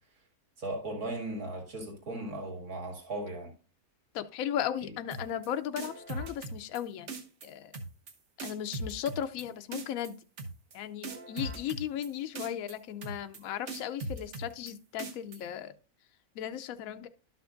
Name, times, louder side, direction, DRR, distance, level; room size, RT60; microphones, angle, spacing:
voice 1, 0.6-3.5, right 2 dB, 75° right, 2.5 m, -37 dB
voice 2, 4.1-7.1 7.4-7.7 8.4-10.2 10.7-15.7 16.3-17.1, left 10 dB, 70° left, 1.0 m, -36 dB
sound 1, 5.1-5.5 5.8-6.8 7.1-7.5 7.7-8.1 8.4-9.4 9.7-10.1 10.4-10.8 11.0-12.1 12.4-12.7 13.0-13.4 13.7-14.7 15.0-15.4, right 2 dB, 55° right, 1.2 m, -39 dB
12.0 x 5.9 x 2.5 m
omnidirectional pair, 1.6 m